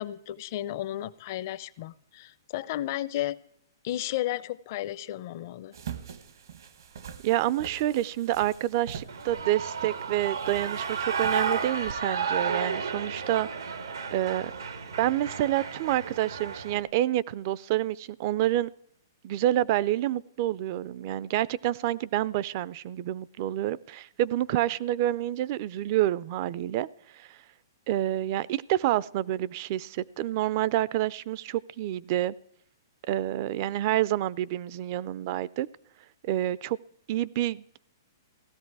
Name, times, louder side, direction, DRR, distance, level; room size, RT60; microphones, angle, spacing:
voice 1, 0.0-3.4 3.8-5.8, left 14 dB, 45° left, 17 dB, 0.6 m, -33 dB
sound 1, 5.7-11.9, right 7 dB, 70° right, 1.2 m, -44 dB
voice 2, 7.2-13.8 14.1-14.5 15.0-18.7 19.2-26.9 27.1-27.4 27.9-32.3 33.1-35.7 36.2-36.8 37.1-37.8, right 14 dB, 40° right, 21 dB, 0.4 m, -28 dB
Shout / Cheering, 9.1-16.8, right 5 dB, 90° right, 1.4 m, -32 dB
16.0 x 13.0 x 4.7 m, 0.73 s
hypercardioid pair, 145°, 2 cm